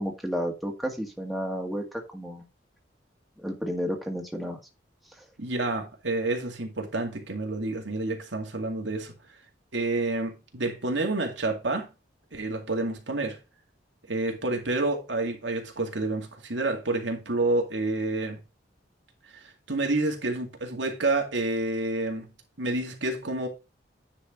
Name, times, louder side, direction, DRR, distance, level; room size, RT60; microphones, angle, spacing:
voice 1, 0.0-2.5 3.4-4.6, equal, ahead, 1.8 m, -32 dB
voice 2, 5.4-9.1 9.7-11.9 12.3-13.4 14.1-18.4 19.3-22.3 22.6-23.5, right 2 dB, 90° right, 2.2 m, -29 dB
9.8 x 4.7 x 3.5 m
head